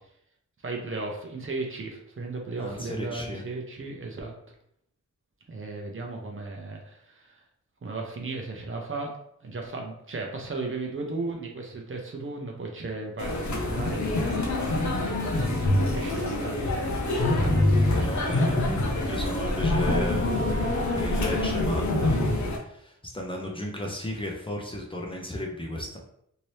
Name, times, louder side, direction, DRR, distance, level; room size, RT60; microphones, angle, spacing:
voice 1, 0.6-4.3 5.5-7.3 7.8-16.7, right 3 dB, 45° right, 1 dB, 0.7 m, -36 dB
voice 2, 2.6-3.4 17.9-18.6 19.0-20.3 20.9-21.8 22.4-26.0, left 1 dB, 15° left, -1 dB, 0.5 m, -34 dB
sound 1, 13.2-22.6, left 1 dB, 70° left, 0.8 m, -25 dB
2.9 x 2.7 x 3.1 m, 0.71 s
wide cardioid pair, 120°, 30 cm